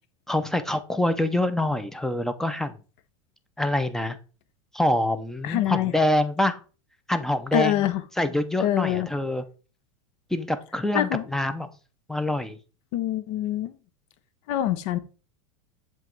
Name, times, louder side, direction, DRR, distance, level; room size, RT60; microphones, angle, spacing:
voice 1, 0.3-2.7 3.6-4.2 4.7-6.6 7.1-7.9 8.2-9.4 10.3-11.7 12.1-12.6, left 1 dB, 5° left, 0.5 m, -25 dB
voice 2, 5.4-5.9 7.5-8.0 8.6-9.1 10.9-11.2 12.9-13.7 14.5-15.0, left 12 dB, 60° left, 0.7 m, -25 dB
7.4 x 3.0 x 4.6 m
supercardioid pair, 125°, 17 cm